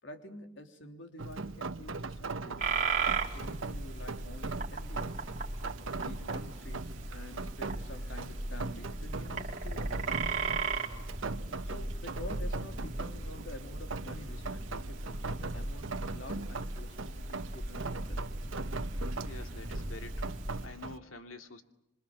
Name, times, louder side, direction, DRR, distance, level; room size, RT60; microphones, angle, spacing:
voice 1, 0.0-2.9 3.3-5.2 6.0-10.1 11.5-18.3, left 1 dB, 65° left, 6 dB, 3.4 m, -48 dB
Rain, 1.2-21.0, right 3 dB, 80° right, 1.1 m, -41 dB
sound 1, 2.6-20.7, right 3 dB, 40° right, 3.8 m, -37 dB
voice 2, 19.2-21.6, left 3 dB, 90° left, 7 dB, 2.5 m, -48 dB
27.5 x 25.0 x 7.4 m, 0.80 s
head